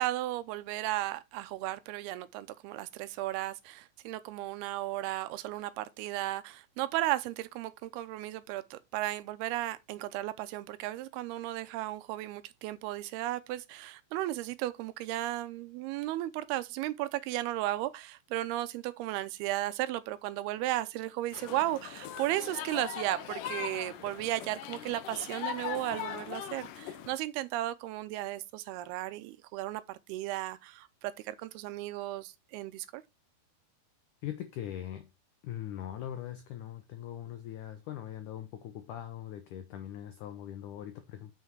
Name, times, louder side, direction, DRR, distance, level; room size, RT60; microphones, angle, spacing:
voice 1, 0.0-33.0, right 15 dB, 85° right, 2.5 m, -35 dB
sound 1, 21.3-27.2, left 10 dB, 75° left, 2.0 m, -40 dB
voice 2, 34.2-35.1 35.4-41.3, left 11 dB, 90° left, 1.8 m, -41 dB
6.3 x 5.8 x 4.6 m
omnidirectional pair, 4.7 m